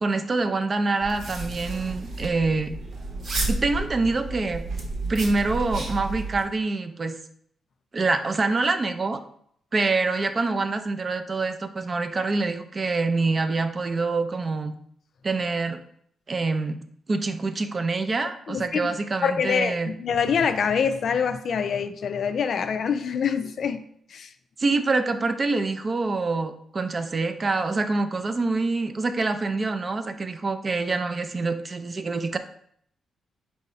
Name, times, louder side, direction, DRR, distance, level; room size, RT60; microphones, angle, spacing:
voice 1, 0.0-2.7 3.5-4.6 5.1-7.2 7.9-9.2 9.7-14.7 15.2-15.8 16.3-16.8 17.1-19.9 24.6-32.4, right 3 dB, 35° right, 8 dB, 0.4 m, -25 dB
sound 1, 1.0-6.4, right 2 dB, 60° right, 1.0 m, -32 dB
voice 2, 18.5-18.9 19.2-23.8 24.1-24.3, left 6 dB, 60° left, 9 dB, 0.3 m, -25 dB
4.6 x 2.6 x 4.2 m, 0.67 s
cardioid pair, 105°, 0 cm